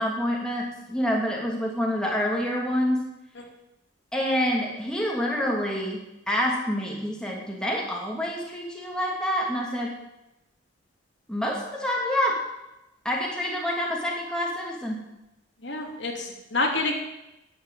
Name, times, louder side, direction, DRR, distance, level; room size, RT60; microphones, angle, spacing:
voice 1, 0.0-3.1 4.1-6.0 6.3-9.9 11.3-12.4 13.0-15.0, equal, 5° left, -2 dB, 2.7 m, -27 dB
voice 2, 15.6-16.9, left 2 dB, 65° left, 1 dB, 2.8 m, -27 dB
11.5 x 9.6 x 9.0 m, 0.93 s
head